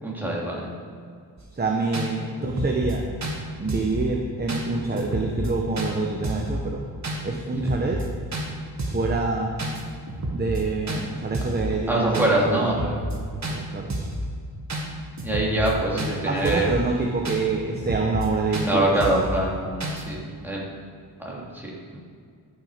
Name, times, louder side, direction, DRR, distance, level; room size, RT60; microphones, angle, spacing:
voice 1, 0.0-0.7 11.9-12.9 15.2-16.7 18.7-20.6 21.2-22.0, right 1 dB, 5° right, -5 dB, 3.1 m, -24 dB
sound 1, 1.4-1.5 1.9-2.1 2.4-2.9 3.2-3.4 3.7-4.0 4.5-4.6 5.0-5.5 5.8-5.9 6.2-6.5 7.0-7.2 7.5-8.0 8.3-8.5 8.8-9.1 9.6-9.8 10.1-10.6 10.9-11.0 11.3-11.7 12.1-12.3 12.6-13.2 13.4-13.6 13.9-14.2 14.7-14.8 15.2-15.7 16.0-16.1 16.5-16.8 17.2-17.4 17.7-18.3 18.5-18.7 19.0-19.3 19.8-20.0, right 1 dB, 40° right, 1.9 m, -30 dB
voice 2, 1.5-3.0 3.6-6.8 7.2-8.0 8.8-9.5 10.3-12.7 13.5-13.9 16.3-19.3, right 3 dB, 25° right, 0 dB, 1.0 m, -26 dB
13.5 x 6.5 x 5.2 m, 2.2 s
wide cardioid pair, 120°, 42 cm